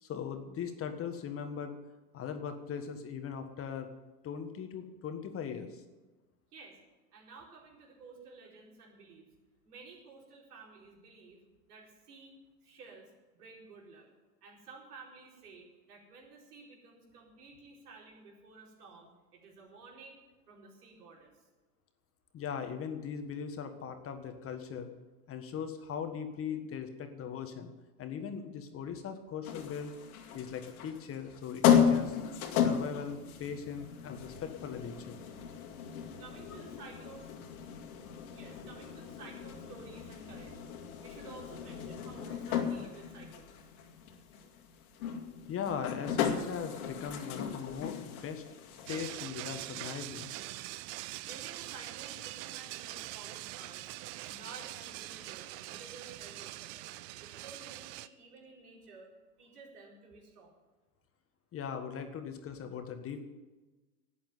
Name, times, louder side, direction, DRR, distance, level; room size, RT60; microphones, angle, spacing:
voice 1, 0.0-1.8 2.1-3.9 4.2-5.8 22.3-24.9 25.3-27.7 28.0-29.9 30.3-32.2 32.6-35.2 45.5-48.4 48.9-50.3 61.5-63.3, left 7 dB, 30° left, 7 dB, 1.5 m, -39 dB
voice 2, 7.1-9.3 9.6-11.4 11.7-12.4 12.6-14.1 14.4-21.3 36.2-37.3 38.3-40.6 41.0-43.5 51.2-53.9 54.2-56.9 57.2-59.1 59.4-60.6, right 4 dB, 75° right, -1 dB, 4.6 m, -53 dB
sound 1, 29.4-49.2, left 8 dB, 65° left, 2.4 m, -34 dB
sound 2, 48.9-58.1, right 17 dB, 35° right, 0.5 m, -43 dB
12.0 x 9.0 x 9.4 m, 1.2 s
hypercardioid pair, 105°, 46 cm